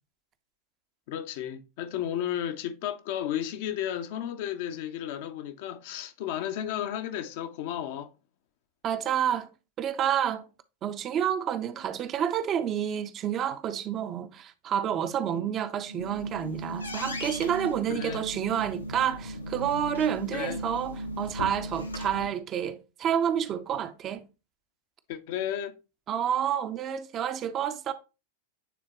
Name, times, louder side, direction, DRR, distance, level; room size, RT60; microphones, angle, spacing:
voice 1, 1.1-8.1 15.3-15.5 17.9-18.3 20.3-20.6 25.1-25.8, left 10 dB, 50° left, 0.6 m, -33 dB
voice 2, 8.8-9.5 9.8-10.5 10.8-24.2 26.1-27.9, right 9 dB, 30° right, 0.5 m, -29 dB
sound 1, 15.8-22.3, equal, 80° left, 0.8 m, -37 dB
9.1 x 3.6 x 2.9 m
figure-of-eight pair, 90°, 0 cm